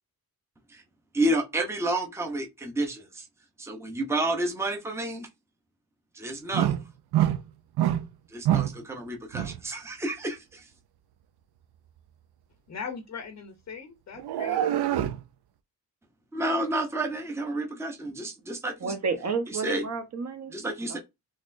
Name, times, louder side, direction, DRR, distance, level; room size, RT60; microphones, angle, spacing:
voice 1, 1.1-3.2 3.6-5.3 6.1-6.8 8.3-10.7 16.3-18.9 19.5-19.8 20.5-21.0, right 1 dB, 5° right, 0.7 m, -30 dB
sound 1, 6.5-6.9 7.1-7.4 7.8-8.1 8.5-8.8 9.3-9.6 14.2-15.2, right 11 dB, 80° right, 0.5 m, -25 dB
voice 2, 12.7-14.9, left 6 dB, 45° left, 0.7 m, -40 dB
voice 3, 18.8-20.5 20.9-21.0, right 5 dB, 45° right, 1.0 m, -31 dB
4.1 x 3.1 x 2.6 m
cardioid pair, 115°, 39 cm